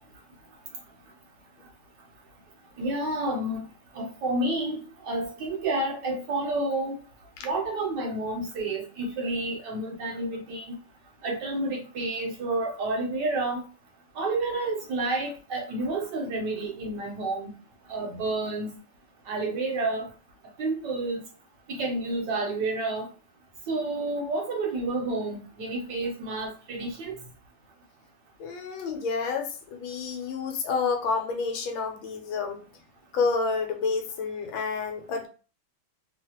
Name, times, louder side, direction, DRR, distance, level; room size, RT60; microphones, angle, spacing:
voice 1, 2.8-3.6 3.9-7.0 7.4-10.8 11.2-13.6 14.2-17.5 17.9-18.7 19.3-20.1 20.6-21.2 21.7-23.1 23.7-27.1, right 2 dB, 70° right, 1.2 m, -30 dB
voice 2, 28.4-32.6 33.1-35.3, left 4 dB, 80° left, 1.4 m, -29 dB
3.1 x 2.3 x 2.8 m
omnidirectional pair, 2.3 m